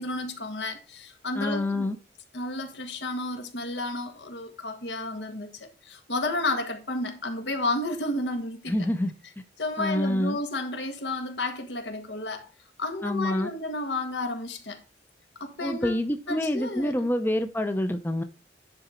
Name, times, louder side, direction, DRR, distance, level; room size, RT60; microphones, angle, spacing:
voice 1, 0.0-1.9 2.3-8.8 9.6-12.5 12.8-14.8 15.4-15.9 16.3-16.9, left 2 dB, 75° left, 1.6 m, -32 dB
voice 2, 1.3-2.0 8.7-9.1 9.8-10.4 13.0-13.5 15.6-18.2, left 1 dB, 10° left, 0.5 m, -27 dB
10.5 x 4.0 x 4.4 m
head